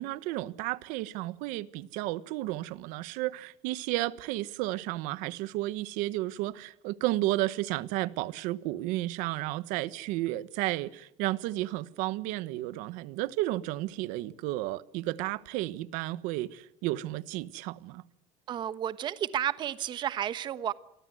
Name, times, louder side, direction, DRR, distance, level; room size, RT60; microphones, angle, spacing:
voice 1, 0.0-18.0, right 17 dB, 70° right, 1.4 m, -32 dB
voice 2, 18.5-20.7, right 10 dB, 35° right, 1.2 m, -32 dB
28.5 x 23.5 x 8.0 m
cardioid pair, 170°, 14 cm